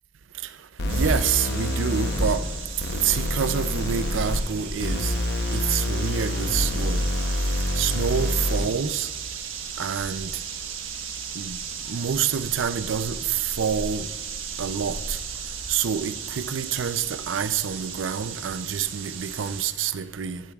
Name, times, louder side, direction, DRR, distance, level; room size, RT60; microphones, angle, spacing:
sound 1, 0.8-8.8, left 1 dB, 60° left, 0.8 m, -27 dB
voice 1, 0.9-2.4 3.0-5.1 5.5-7.0 7.8-9.1 9.8-10.3 11.4-11.6 11.9-13.2 13.6-14.1 14.6-15.2 15.7-20.4, right 7 dB, 75° right, 0.5 m, -27 dB
sound 2, 0.9-19.7, right 5 dB, 90° right, 1.3 m, -35 dB
15.5 x 12.0 x 2.4 m
head